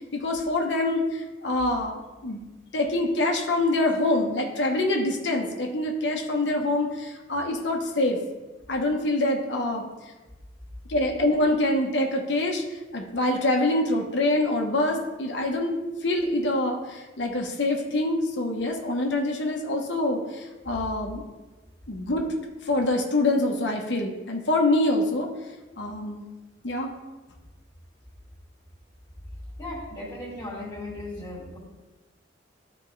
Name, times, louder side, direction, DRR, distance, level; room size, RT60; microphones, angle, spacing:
voice 1, 0.1-2.4 2.7-8.2 8.7-9.9 10.9-12.6 12.9-21.2 21.9-22.2 22.6-25.3 25.8-26.3 26.6-26.9, left 1 dB, 70° left, 1 dB, 1.1 m, -25 dB
voice 2, 29.6-31.6, left 1 dB, 20° left, -6 dB, 2.2 m, -36 dB
12.5 x 4.4 x 3.3 m, 1.2 s
head